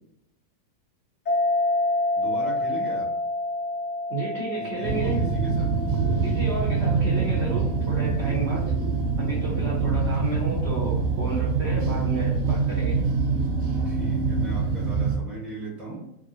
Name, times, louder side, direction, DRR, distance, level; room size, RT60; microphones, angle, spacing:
sound 1, 1.3-8.3, left 2 dB, 55° left, 0.4 m, -29 dB
voice 1, 2.2-3.1 4.5-5.7 9.9-10.3 13.8-16.0, right 1 dB, ahead, -5 dB, 0.9 m, -38 dB
voice 2, 4.1-5.2 6.2-8.8 9.2-13.0, right 3 dB, 55° right, -6 dB, 0.7 m, -32 dB
sound 2, 4.8-15.2, right 4 dB, 85° right, 0.7 m, -25 dB
3.0 x 2.6 x 2.7 m, 0.82 s
omnidirectional pair, 2.1 m